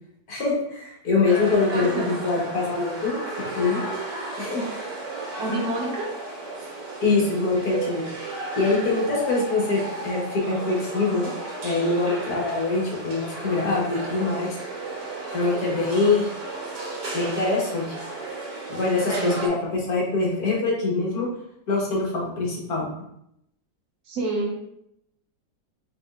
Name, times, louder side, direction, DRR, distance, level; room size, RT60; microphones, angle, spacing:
voice 1, 0.3-3.2 3.5-3.8 4.4-4.6 7.0-8.0 8.5-11.3 11.6-14.6 15.3-16.3 17.1-18.0 18.7-21.3 21.7-22.9, left 3 dB, 65° left, -4 dB, 1.7 m, -24 dB
sound 1, 1.2-19.5, right 2 dB, 85° right, 1.8 m, -34 dB
voice 2, 1.7-2.1 5.4-6.1 19.1-19.4 24.1-24.6, right 2 dB, 65° right, -2 dB, 1.5 m, -28 dB
5.1 x 4.0 x 2.4 m, 0.77 s
omnidirectional pair, 1.8 m